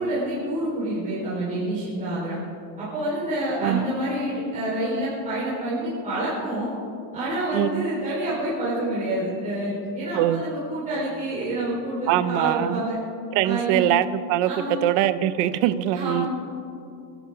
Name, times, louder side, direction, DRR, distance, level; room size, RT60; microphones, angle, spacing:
voice 1, 0.0-2.4 2.8-6.7 7.1-13.0 13.4-13.8 14.5-14.8 15.9-16.3, right 1 dB, 15° right, -10 dB, 4.6 m, -28 dB
voice 2, 7.5-7.9 10.1-10.5 12.1-12.8 13.3-14.5 14.8-16.3, right 13 dB, 40° right, 14 dB, 0.6 m, -22 dB
26.5 x 12.5 x 3.9 m, 2.6 s
supercardioid pair, 165°, 50 cm